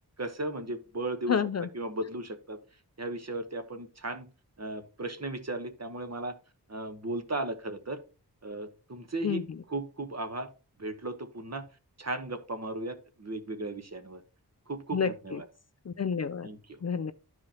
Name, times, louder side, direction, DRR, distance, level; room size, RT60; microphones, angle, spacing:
voice 1, 0.2-1.4 1.7-2.6 3.0-4.3 4.6-6.3 6.7-8.0 8.4-9.4 9.7-10.5 10.8-11.7 12.0-14.2 14.7-15.4 16.4-16.8, right 2 dB, 40° right, 1.1 m, -36 dB
voice 2, 1.3-1.7 9.2-9.4 14.9-15.4 15.9-16.5 16.8-17.1, left 6 dB, 45° left, 0.4 m, -29 dB
12.5 x 4.8 x 2.8 m
wide cardioid pair, 70°, 39 cm